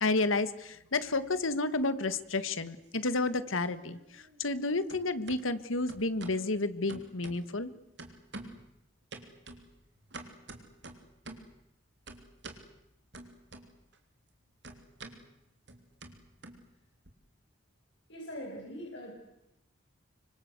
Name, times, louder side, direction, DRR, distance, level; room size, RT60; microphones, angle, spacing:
voice 1, 0.0-7.7, left 3 dB, 90° left, 13 dB, 1.6 m, -31 dB
sound 1, 1.8-2.7 3.0-4.6 4.9-5.4 5.9-6.4 6.9-7.7 8.0-8.7 9.1-11.5 12.1-12.7 13.1-14.0 14.2-17.1, right 2 dB, 60° right, 3.3 m, -48 dB
voice 2, 18.1-19.1, equal, 65° left, -2 dB, 6.6 m, -42 dB
25.5 x 25.0 x 8.2 m, 0.87 s
head